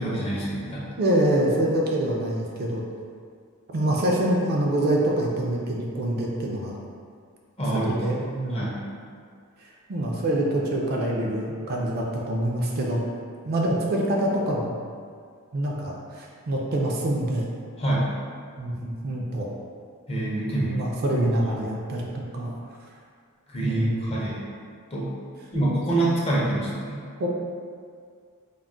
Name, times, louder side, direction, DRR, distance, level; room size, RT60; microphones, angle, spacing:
voice 1, 0.0-0.9 7.6-8.0 8.5-8.8 17.8-18.1 20.1-20.8 21.6-21.7 23.5-24.5 24.9-25.1 25.5-27.0, right 1 dB, 25° left, -6 dB, 0.5 m, -26 dB
voice 2, 1.0-2.8 3.7-6.8 7.9-8.7 9.6-13.0 13.4-14.8 15.5-17.5 18.6-19.5 20.7-22.5 23.6-24.2 27.2-27.3, right 1 dB, 45° right, -2 dB, 0.3 m, -25 dB
2.2 x 2.0 x 3.7 m, 2.1 s
head